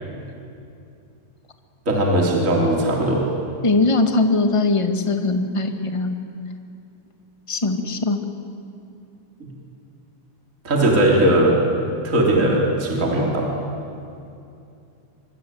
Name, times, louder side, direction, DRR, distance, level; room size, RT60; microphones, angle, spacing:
voice 1, 1.9-3.3 9.4-9.5 10.6-11.6 12.0-13.5, right 1 dB, 25° right, -2 dB, 3.5 m, -18 dB
voice 2, 3.6-6.2 7.5-8.2, left 3 dB, 15° left, 5 dB, 1.0 m, -20 dB
26.0 x 24.5 x 9.2 m, 2.6 s
omnidirectional pair, 3.4 m